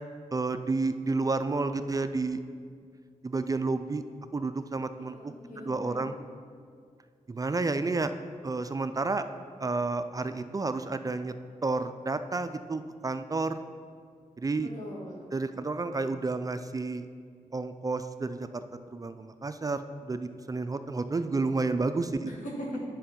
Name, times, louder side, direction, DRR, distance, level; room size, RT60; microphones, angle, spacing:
voice 1, 0.3-2.4 3.2-4.0 4.3-6.1 7.3-8.1 8.4-9.2 9.6-11.3 11.6-13.6 14.4-14.7 15.3-17.0 17.5-18.6 18.9-22.3, right 3 dB, 30° right, 10 dB, 0.4 m, -30 dB
voice 2, 5.0-6.1 14.6-15.2 22.2-22.8, equal, 80° left, -2 dB, 1.9 m, -40 dB
9.1 x 5.3 x 5.7 m, 2.1 s
cardioid pair, 70°, 13 cm